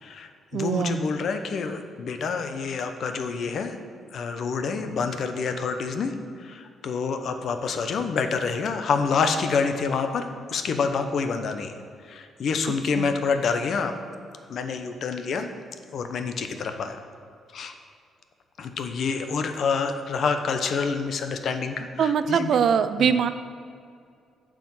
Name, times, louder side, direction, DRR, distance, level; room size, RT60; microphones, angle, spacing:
voice 1, 0.0-3.8 4.1-11.7 12.0-13.9 14.5-15.5 15.9-17.0 17.5-17.7 18.6-22.6 23.0-23.1, left 5 dB, 60° left, 7 dB, 0.9 m, -27 dB
voice 2, 0.5-1.0 13.0-13.1 22.0-23.3, right 7 dB, 65° right, 12 dB, 0.5 m, -22 dB
9.2 x 5.0 x 7.6 m, 2.3 s
cardioid pair, 100°, 0 cm